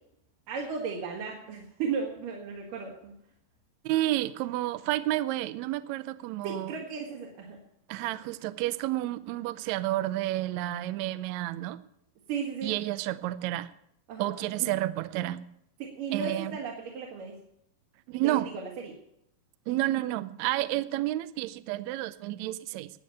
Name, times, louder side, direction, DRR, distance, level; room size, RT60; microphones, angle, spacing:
voice 1, 0.5-3.2 6.4-7.6 12.3-12.7 14.1-14.3 14.6-14.7 15.8-17.4 18.2-18.9, right 5 dB, 70° right, -2 dB, 3.4 m, -35 dB
voice 2, 3.8-6.8 7.9-11.8 12.6-13.7 14.2-15.5 16.1-16.6 18.1-18.5 19.7-22.9, right 15 dB, 90° right, 14 dB, 1.6 m, -30 dB
13.0 x 8.6 x 9.1 m, 0.76 s
omnidirectional pair, 4.0 m